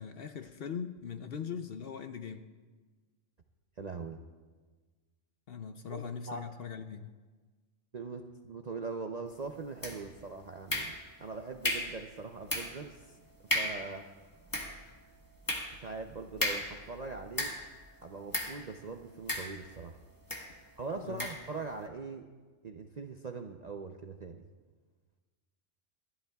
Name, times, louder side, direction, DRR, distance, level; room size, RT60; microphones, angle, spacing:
voice 1, 0.0-2.5 5.5-7.1 21.0-21.3, left 7 dB, 55° left, 8 dB, 0.7 m, -40 dB
voice 2, 3.8-4.2 5.9-6.5 7.9-13.2 13.5-14.3 15.7-17.5 18.0-20.0 20.6-22.3 22.6-24.4, right 4 dB, 50° right, 4 dB, 0.5 m, -42 dB
sound 1, 9.8-10.2 10.7-11.3 11.6-12.0 12.5-12.9 13.2-13.3 13.5-13.9 14.3-17.8 18.3-18.6 19.3-19.9 20.3-20.5 21.2-21.5, left 1 dB, 15° left, 1.3 m, -35 dB
27.0 x 11.5 x 2.3 m, 1.4 s
omnidirectional pair, 1.3 m